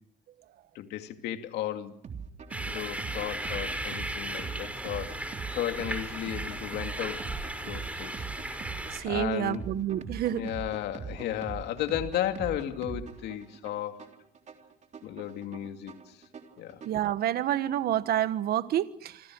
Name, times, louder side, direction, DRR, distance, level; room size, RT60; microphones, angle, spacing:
voice 1, 0.7-1.9 2.7-5.2 5.5-7.2 7.6-8.3 9.0-9.7 10.3-14.0 15.0-16.2 16.6-16.8, left 12 dB, 80° left, 2.5 m, -34 dB
sound 1, 2.0-17.1, right 6 dB, 45° right, 3.6 m, -42 dB
sound 2, 2.5-9.0, right 1 dB, 10° right, 5.8 m, -36 dB
voice 2, 8.9-10.5 16.8-19.2, right 12 dB, 65° right, 1.5 m, -28 dB
27.5 x 26.0 x 6.3 m
cardioid pair, 110°, 17 cm